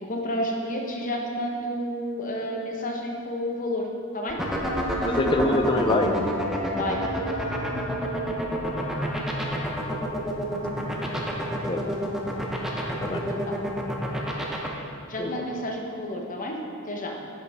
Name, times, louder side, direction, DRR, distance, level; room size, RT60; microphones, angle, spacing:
voice 1, 0.1-3.9 4.1-4.4 6.7-7.0 13.5-13.6 15.1-16.6 16.9-17.1, equal, 40° left, 1 dB, 1.0 m, -30 dB
sound 1, 4.3-14.7, equal, ahead, 0.8 m, -27 dB
voice 2, 5.0-6.2 8.8-9.1 11.7-11.9 13.0-13.2 15.2-15.4, left 2 dB, 25° left, 4 dB, 0.5 m, -25 dB
9.9 x 6.5 x 3.5 m, 2.5 s
head